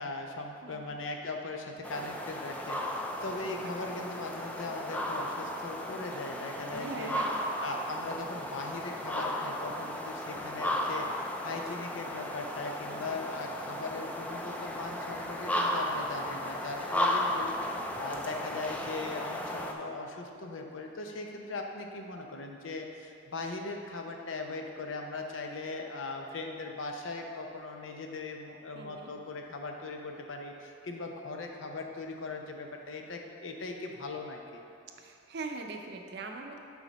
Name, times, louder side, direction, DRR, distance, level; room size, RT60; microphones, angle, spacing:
voice 1, 0.0-7.2 7.6-34.6, left 3 dB, 85° left, 3 dB, 0.7 m, -39 dB
voice 2, 0.6-1.0 3.2-3.6 6.7-7.6 12.9-13.3 28.7-29.1 35.0-36.6, right 3 dB, 60° right, 3 dB, 0.6 m, -42 dB
sound 1, 1.8-19.7, left 1 dB, 10° left, 0.4 m, -35 dB
7.1 x 4.9 x 4.1 m, 2.6 s
head